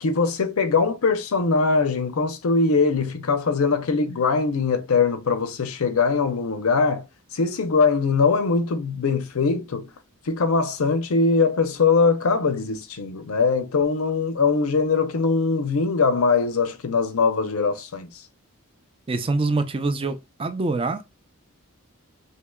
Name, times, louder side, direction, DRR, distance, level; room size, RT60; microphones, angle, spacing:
voice 1, 0.0-7.1 7.3-9.9 10.3-18.1, left 4 dB, 80° left, 0.6 m, -22 dB
voice 2, 19.1-21.0, right 3 dB, 25° right, 0.4 m, -25 dB
4.3 x 2.8 x 2.3 m
head